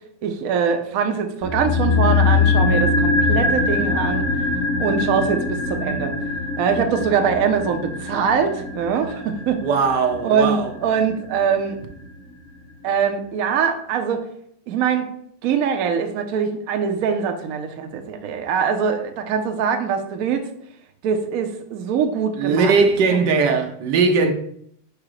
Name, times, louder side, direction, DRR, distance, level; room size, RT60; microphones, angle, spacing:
voice 1, 0.2-4.2 4.8-6.1 6.6-9.6 10.2-11.8 12.8-14.3 14.7-15.1 15.4-20.5 21.0-22.7 23.1-23.3, right 6 dB, 65° right, 1.0 m, -23 dB
sound 1, 1.4-11.7 11.9-12.0, left 3 dB, 50° left, 1.8 m, -22 dB
voice 2, 9.6-10.7 22.4-24.3, right 4 dB, 80° right, 1.4 m, -19 dB
4.8 x 4.8 x 4.8 m
omnidirectional pair, 1.9 m